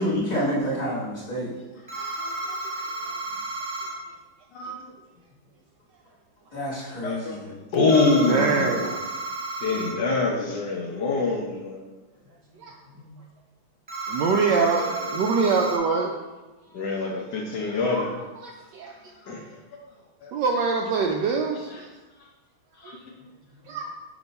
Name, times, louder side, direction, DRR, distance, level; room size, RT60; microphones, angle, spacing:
voice 1, 0.0-1.5 6.5-7.5 12.9-13.1, equal, 20° left, -8 dB, 1.8 m, -28 dB
sound 1, 1.9-3.9 7.9-9.9 13.9-15.8, right 2 dB, 20° right, 1.2 m, -32 dB
voice 2, 2.2-2.6 3.1-3.2 8.3-9.0 12.6-12.8 14.1-16.1 17.9-18.1 18.4-18.9 20.3-21.9 23.7-23.9, right 5 dB, 75° right, 2 dB, 1.0 m, -24 dB
voice 3, 7.0-7.4 7.7-8.9 9.6-11.8 14.6-15.2 16.7-18.1 19.2-19.6 20.2-20.3 21.7-21.8 22.8-23.1, left 3 dB, 65° left, 0 dB, 1.3 m, -25 dB
6.2 x 3.0 x 5.2 m, 1.1 s
omnidirectional pair, 2.2 m